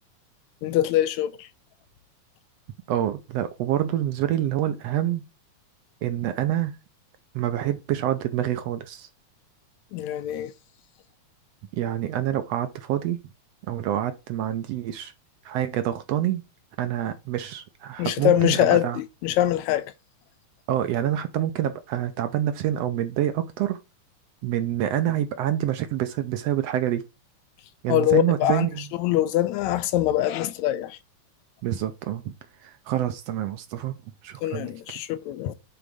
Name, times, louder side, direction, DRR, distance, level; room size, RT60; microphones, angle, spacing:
voice 1, 0.6-1.5 9.9-10.5 18.0-19.9 27.9-31.0 34.4-35.6, left 13 dB, 80° left, 1.9 m, -23 dB
voice 2, 2.9-5.2 6.0-6.7 7.3-9.1 11.7-13.2 13.7-15.1 15.4-16.4 16.8-19.0 20.7-23.8 24.4-27.0 27.8-28.8 31.6-32.3 32.6-33.9 34.2-34.7, right 11 dB, 75° right, 1.6 m, -27 dB
9.2 x 3.9 x 4.8 m
omnidirectional pair, 3.3 m